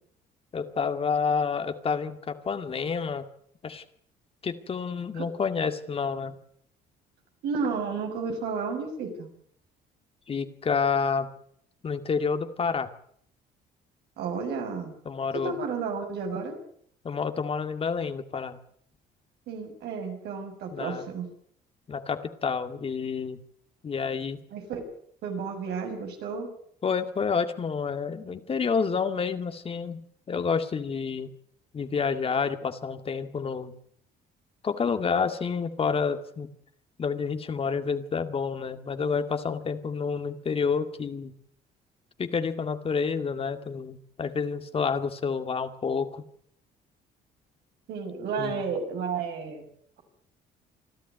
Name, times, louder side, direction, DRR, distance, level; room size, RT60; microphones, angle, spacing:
voice 1, 0.5-3.2 3.6-3.8 4.4-6.4 10.3-11.3 11.8-12.9 15.1-15.6 17.0-18.6 20.7-21.0 21.9-23.4 23.8-24.4 26.8-30.0 30.3-31.3 31.7-33.7 34.6-36.5 37.0-41.3 42.2-46.2 48.4-48.6, left 5 dB, 35° left, 9 dB, 2.2 m, -29 dB
voice 2, 7.4-9.3 14.2-14.9 15.3-16.6 19.5-21.3 24.5-24.8 25.2-26.5 47.9-49.6, right 5 dB, 75° right, 4 dB, 6.5 m, -32 dB
27.0 x 12.5 x 9.5 m, 0.65 s
cardioid pair, 110°, 17 cm